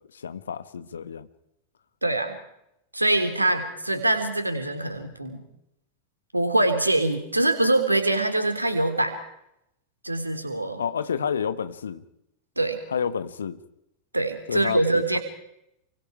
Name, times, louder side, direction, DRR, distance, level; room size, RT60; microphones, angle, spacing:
voice 1, 0.1-1.3 10.8-12.0 12.9-13.6 14.5-15.2, left 7 dB, 70° left, 12 dB, 1.4 m, -30 dB
voice 2, 2.0-2.4 2.9-5.4 6.3-9.2 10.0-10.8 12.6-12.8 14.1-15.2, right 2 dB, 85° right, 8 dB, 3.4 m, -24 dB
29.0 x 24.0 x 4.9 m, 0.82 s
figure-of-eight pair, 90°, 0 cm